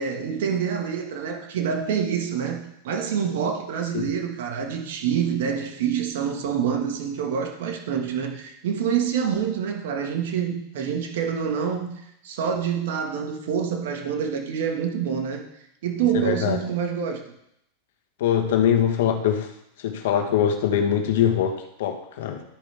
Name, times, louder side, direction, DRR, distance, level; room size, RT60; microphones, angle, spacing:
voice 1, 0.0-15.4 15.8-17.2, right 7 dB, 70° right, 3 dB, 1.6 m, -26 dB
voice 2, 16.1-16.6 18.2-19.5 19.8-22.4, left 9 dB, 75° left, 5 dB, 1.2 m, -23 dB
13.0 x 5.2 x 3.5 m, 0.78 s
hypercardioid pair, 120°, 0 cm